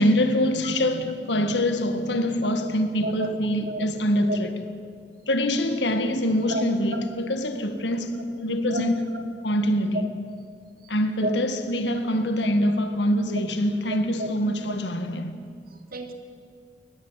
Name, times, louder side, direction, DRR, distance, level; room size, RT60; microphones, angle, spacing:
voice 1, 0.0-4.5 5.3-9.0 9.4-10.1 10.9-15.3, equal, 75° left, 1.7 m, -24 dB
voice 2, 3.0-3.4 3.7-3.9 4.3-4.4 6.5-6.6 6.9-7.0 8.7-8.8 9.1-9.2 11.2-11.3 13.3-13.4 13.9-14.3 15.9-16.1, right 1 dB, 55° right, 2.7 m, -30 dB
22.0 x 19.0 x 7.5 m
head